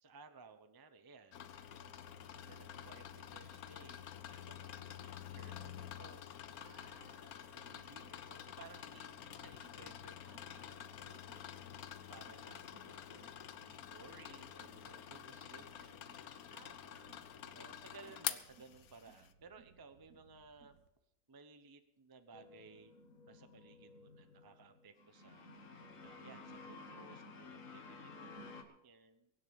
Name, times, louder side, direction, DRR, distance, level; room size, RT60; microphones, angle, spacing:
voice 1, 0.0-1.8 2.4-6.6 7.5-11.5 11.7-16.5 17.5-20.8 21.3-22.9 23.2-29.3, right 4 dB, 20° right, 9 dB, 0.7 m, -59 dB
sound 1, 1.3-19.3, left 10 dB, 75° left, 1.3 m, -48 dB
sound 2, 1.5-20.9, right 6 dB, 85° right, 1.6 m, -68 dB
voice 2, 2.4-3.1 6.5-7.8 10.3-11.1 12.6-13.3 16.5-17.8, right 3 dB, 70° right, 5 dB, 2.7 m, -66 dB
sound 3, 22.3-28.6, left 3 dB, 60° left, 1.9 m, -54 dB
23.0 x 7.8 x 5.3 m, 0.86 s
omnidirectional pair, 1.6 m